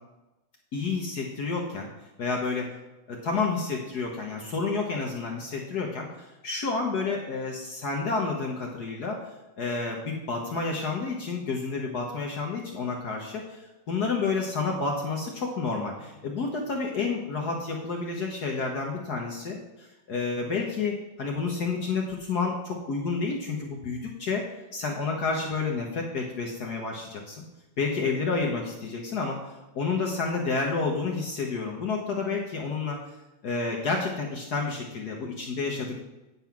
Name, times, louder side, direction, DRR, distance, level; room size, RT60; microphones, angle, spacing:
voice 1, 0.7-1.9 2.2-2.7 3.1-9.2 9.6-24.4 24.7-27.4 27.8-33.0 33.4-36.0, left 4 dB, 55° left, 0 dB, 1.5 m, -30 dB
9.5 x 5.5 x 5.9 m, 1.0 s
omnidirectional pair, 2.3 m